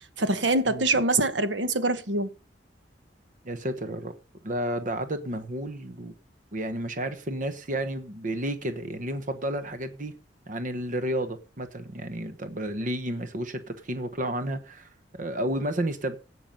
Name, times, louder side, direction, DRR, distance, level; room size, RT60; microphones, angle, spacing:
voice 1, 0.2-2.3, right 2 dB, 75° right, 1.3 m, -24 dB
voice 2, 3.4-4.1 4.4-6.1 6.5-10.1 10.5-16.2, right 1 dB, 45° right, 1.0 m, -31 dB
16.5 x 6.0 x 5.3 m
head